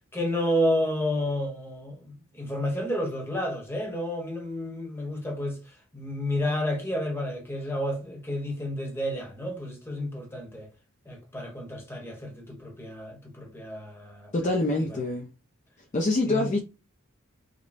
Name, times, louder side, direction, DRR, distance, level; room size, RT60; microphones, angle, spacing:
voice 1, 0.1-10.7 11.0-14.3 14.8-15.0 16.2-16.5, left 1 dB, 10° left, 1.0 m, -31 dB
voice 2, 14.3-15.3 15.9-16.6, left 2 dB, 35° left, 0.5 m, -25 dB
5.0 x 2.1 x 2.6 m
head